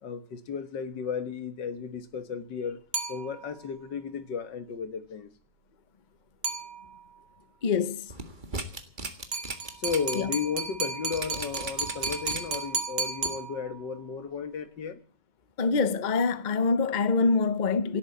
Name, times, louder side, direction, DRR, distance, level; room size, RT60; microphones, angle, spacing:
voice 1, 0.0-2.8 3.1-5.3 9.7-15.0, left 6 dB, 65° left, 2.0 m, -34 dB
sound 1, 2.9-3.7 6.4-7.2 9.3-14.0, right 4 dB, 60° right, 2.6 m, -34 dB
voice 2, 7.6-8.1 10.1-10.3 15.6-18.0, left 4 dB, 50° left, 0.5 m, -25 dB
sound 2, 8.1-10.2 10.5-10.7 11.1-12.8 13.2-13.3, right 3 dB, 25° right, 1.7 m, -36 dB
17.5 x 8.6 x 8.4 m
omnidirectional pair, 2.1 m